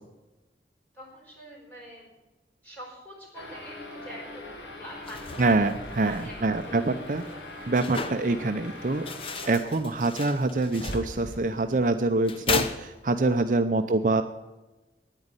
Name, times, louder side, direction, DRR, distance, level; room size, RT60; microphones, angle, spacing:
voice 1, 0.9-2.1 2.6-5.7 6.0-7.7 9.3-9.5, equal, 10° left, -3 dB, 4.4 m, -46 dB
sound 1, 3.3-9.5, left 2 dB, 90° left, 2.3 m, -42 dB
sound 2, 4.9-13.5, left 4 dB, 30° left, 0.8 m, -36 dB
sound 3, 5.0-11.4, right 1 dB, 50° left, 2.3 m, -45 dB
voice 2, 5.4-7.2 7.7-9.1 9.5-14.2, right 2 dB, 45° right, 8 dB, 0.6 m, -25 dB
9.9 x 9.3 x 9.7 m, 1.1 s
head